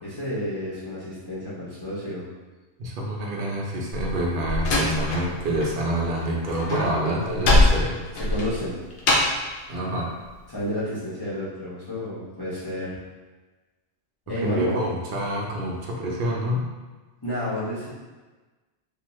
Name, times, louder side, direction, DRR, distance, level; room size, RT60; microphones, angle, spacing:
voice 1, 0.0-2.3 7.0-7.4 8.1-8.8 10.5-12.9 14.3-14.8 17.2-17.9, equal, 25° left, -11 dB, 0.7 m, -30 dB
voice 2, 2.8-8.0 9.7-10.1 14.4-16.6, right 1 dB, 55° right, -2 dB, 0.7 m, -27 dB
Slam, 3.9-5.7 6.0-9.5, left 2 dB, 70° left, 0.7 m, -23 dB
2.6 x 2.3 x 3.1 m, 1.3 s
omnidirectional pair, 1.1 m